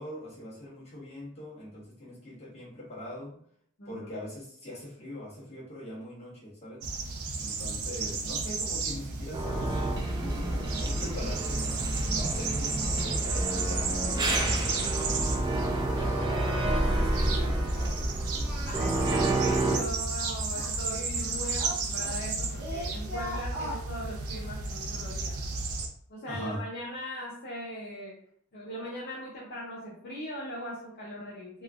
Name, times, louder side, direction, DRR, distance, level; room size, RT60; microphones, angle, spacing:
voice 1, 0.0-3.4 3.8-6.9 7.4-9.8 10.2-11.9 12.1-15.6 15.9-18.0 26.3-26.7, left 1 dB, 30° left, -8 dB, 1.3 m, -42 dB
voice 2, 3.8-4.1 18.6-25.4 26.1-28.1 28.5-31.6, equal, 50° left, -6 dB, 0.7 m, -40 dB
sound 1, 6.8-25.9, right 3 dB, 85° right, 0.5 m, -33 dB
sound 2, 9.3-19.8, right 1 dB, 20° right, 0.4 m, -29 dB
Singing, 16.0-16.3 16.6-17.0 17.3-17.6 18.3-19.9 20.5-22.3 22.6-23.8, equal, 50° right, 0.9 m, -40 dB
3.1 x 2.2 x 2.4 m, 0.63 s
head